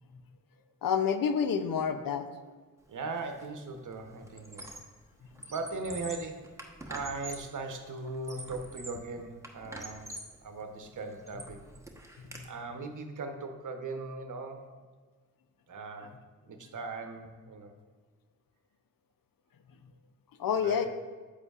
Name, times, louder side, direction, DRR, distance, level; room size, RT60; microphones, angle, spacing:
voice 1, 0.8-2.3 12.2-12.5 20.4-20.9, left 7 dB, 75° left, 9 dB, 0.6 m, -28 dB
voice 2, 2.9-4.7 5.5-6.6 6.9-10.1 10.4-11.6 12.4-14.7 15.7-16.2 16.5-17.7 20.6-20.8, right 3 dB, 60° right, 5 dB, 0.9 m, -39 dB
Squeak, 3.2-3.5 3.8-5.0 5.3-7.6 8.1-9.1 9.4-10.4 10.9-12.4, right 1 dB, 10° right, 1.0 m, -45 dB
8.2 x 7.9 x 2.4 m, 1.4 s
cardioid pair, 50°, 34 cm